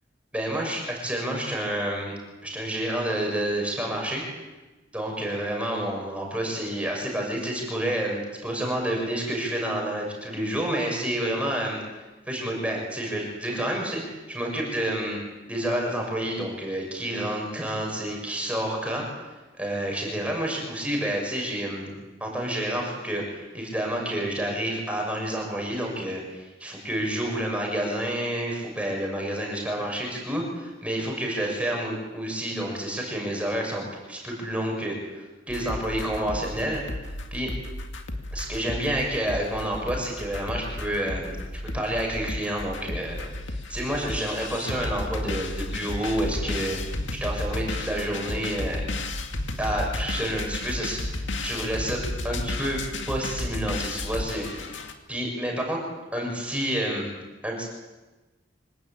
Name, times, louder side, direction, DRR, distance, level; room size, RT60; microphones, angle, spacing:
voice 1, 0.3-2.1 2.4-4.2 4.9-11.8 12.3-15.2 15.5-19.0 19.6-21.9 22.2-36.8 37.3-37.5 38.3-41.4 41.7-48.8 49.6-52.8 53.1-54.8 55.1-55.8 56.1-57.1 57.4-57.7, right 1 dB, 5° right, -1 dB, 6.6 m, -29 dB
sound 1, 35.5-54.9, left 2 dB, 85° left, 2.3 m, -33 dB
26.0 x 17.5 x 8.9 m, 1.2 s
head